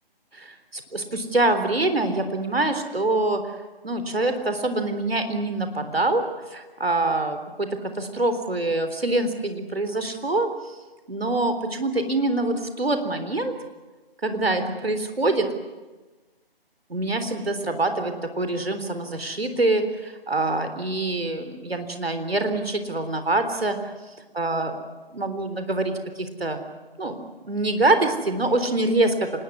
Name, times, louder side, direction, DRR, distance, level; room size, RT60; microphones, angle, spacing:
voice 1, 0.3-3.5 3.8-6.2 6.5-7.7 8.0-10.5 11.1-13.5 14.2-15.5 16.9-23.8 24.4-24.7 25.1-26.6 27.0-27.2 27.4-29.1, right 2 dB, 75° right, 8 dB, 3.8 m, -25 dB
25.5 x 20.5 x 9.8 m, 1.2 s
figure-of-eight pair, 145°, 30 cm